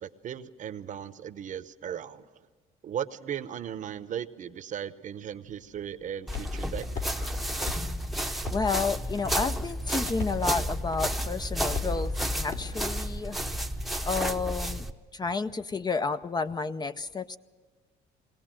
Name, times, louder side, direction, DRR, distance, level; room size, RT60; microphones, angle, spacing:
voice 1, 0.0-2.3 2.8-7.0, right 9 dB, 50° right, 12 dB, 0.9 m, -37 dB
sound 1, 5.5-12.8, left 5 dB, 65° left, 4.1 m, -40 dB
sound 2, 6.3-14.9, equal, ahead, 0.9 m, -31 dB
voice 2, 8.5-13.4 14.0-14.9 15.1-17.4, left 4 dB, 25° left, 11 dB, 0.6 m, -31 dB
21.0 x 17.5 x 7.6 m, 1.4 s
cardioid pair, 110°, 17 cm